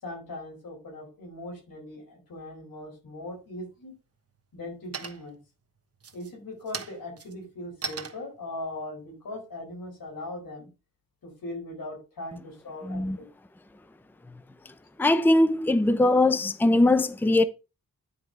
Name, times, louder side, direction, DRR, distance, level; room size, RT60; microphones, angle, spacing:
voice 1, 0.0-4.0 4.5-5.4 6.1-10.7 11.2-13.3, left 1 dB, 85° left, 4.2 m, -39 dB
sound 1, 3.3-3.9 4.3-4.7 4.9-5.5 5.9-10.4, right 5 dB, 45° right, 1.2 m, -40 dB
voice 2, 12.8-13.2 15.0-17.4, left 2 dB, 5° left, 0.6 m, -21 dB
9.7 x 4.8 x 4.5 m
wide cardioid pair, 85°, 34 cm